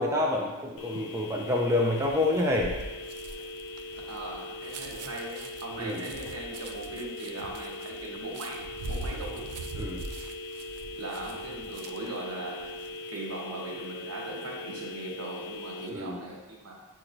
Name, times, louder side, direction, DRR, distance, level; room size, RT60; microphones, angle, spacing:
voice 1, 0.0-2.7 5.8-6.0 9.8-10.0 15.9-16.2, left 2 dB, 15° right, -2 dB, 0.3 m, -27 dB
sound 1, 0.8-15.9, left 2 dB, 85° left, 0.5 m, -40 dB
sound 2, 2.0-12.2 12.6-12.9, right 3 dB, 90° right, 0.4 m, -42 dB
voice 2, 4.1-9.5 11.0-12.8 13.1-16.7, right 2 dB, 70° right, -2 dB, 1.0 m, -39 dB
7.2 x 2.9 x 2.5 m, 1.2 s
head